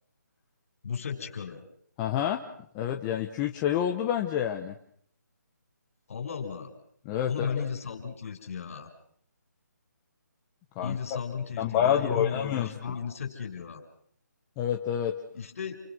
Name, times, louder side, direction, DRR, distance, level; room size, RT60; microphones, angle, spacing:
voice 1, 0.8-1.6 6.1-6.7 7.3-8.9 10.8-13.8 15.3-15.8, left 6 dB, 45° left, 6 dB, 6.3 m, -35 dB
voice 2, 2.0-2.4 2.7-4.8 7.0-7.5 10.8-11.0 11.6-12.7 14.6-15.1, left 10 dB, 15° left, 3 dB, 1.0 m, -28 dB
29.5 x 24.5 x 6.3 m, 0.65 s
hypercardioid pair, 165°, 10 cm